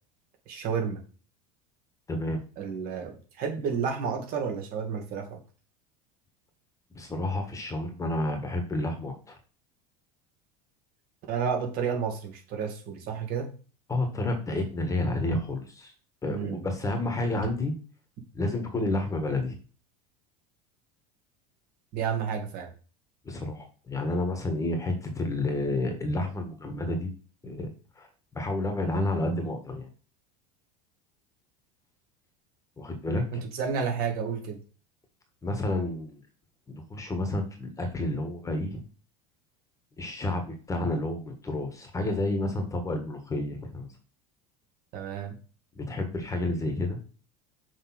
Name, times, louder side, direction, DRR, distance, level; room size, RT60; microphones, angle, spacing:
voice 1, 0.5-1.0 2.6-5.4 11.3-13.5 16.3-16.7 21.9-22.7 33.3-34.6 44.9-45.4, right 6 dB, 50° right, 3 dB, 2.0 m, -31 dB
voice 2, 2.1-2.4 6.9-9.4 13.9-15.9 16.2-17.7 18.3-19.6 23.2-27.1 27.4-27.7 28.0-28.1 28.3-29.9 32.8-33.4 35.4-36.2 36.7-38.8 40.0-43.9 45.7-47.0, left 2 dB, 15° left, 4 dB, 1.5 m, -30 dB
6.2 x 3.6 x 5.7 m, 0.36 s
supercardioid pair, 130°, 19 cm